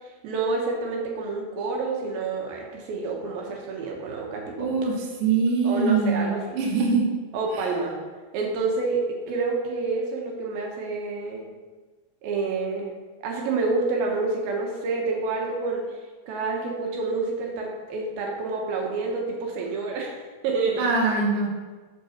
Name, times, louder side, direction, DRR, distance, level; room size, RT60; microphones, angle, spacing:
voice 1, 0.2-4.7 5.6-6.6 7.3-8.0 8.3-11.5 12.2-12.9 13.2-16.0 16.3-20.2 20.4-20.9, right 3 dB, 85° right, 0 dB, 3.0 m, -28 dB
voice 2, 4.6-4.9 5.2-7.1 7.5-7.6 20.8-21.5, right 4 dB, 60° right, -1 dB, 1.7 m, -23 dB
6.0 x 5.6 x 5.8 m, 1.3 s
omnidirectional pair, 4.2 m